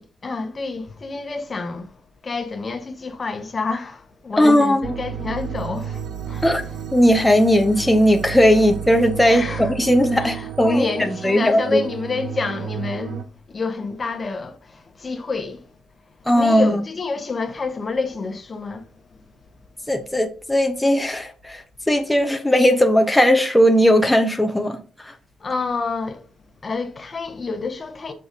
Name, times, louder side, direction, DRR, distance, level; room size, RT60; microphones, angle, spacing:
voice 1, 0.0-1.9 2.2-6.5 9.2-9.7 10.2-13.3 13.5-15.7 16.3-18.9 19.1-19.2 25.4-26.2 26.6-28.1, left 3 dB, 35° left, 1.0 m, -28 dB
voice 2, 4.4-4.8 6.4-6.6 6.9-11.8 16.3-16.8 19.9-24.8 25.1-25.2, equal, 5° left, 1.0 m, -17 dB
sound 1, 4.8-13.2, right 8 dB, 70° right, 0.8 m, -32 dB
6.9 x 3.9 x 5.1 m
cardioid pair, 105°, 0 cm